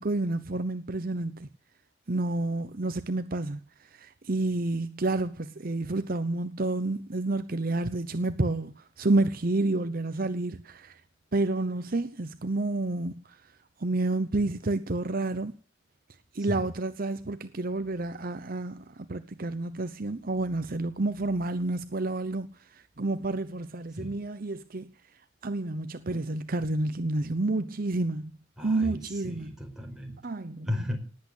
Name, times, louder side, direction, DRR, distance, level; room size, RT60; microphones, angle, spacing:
voice 1, 0.0-1.5 2.1-3.6 3.9-11.0 11.3-13.4 13.8-15.5 16.3-22.5 22.7-24.9 25.4-28.3 28.6-29.5 30.2-30.7, right 2 dB, 50° right, 0.9 m, -29 dB
voice 2, 28.6-30.2 30.7-31.0, left 1 dB, 5° right, 5.0 m, -35 dB
19.0 x 8.6 x 8.1 m
head